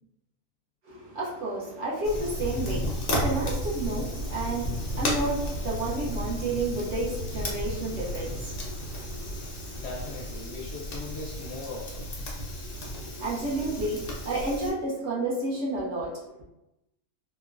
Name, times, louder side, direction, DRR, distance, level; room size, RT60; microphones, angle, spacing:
voice 1, 0.8-9.8 12.5-16.4, right 2 dB, 60° right, -5 dB, 0.9 m, -31 dB
Fire, 2.0-14.7, equal, 90° left, 0.3 m, -33 dB
voice 2, 9.8-12.1, left 3 dB, 65° left, -4 dB, 0.7 m, -39 dB
3.0 x 2.1 x 2.4 m, 0.91 s
omnidirectional pair, 1.5 m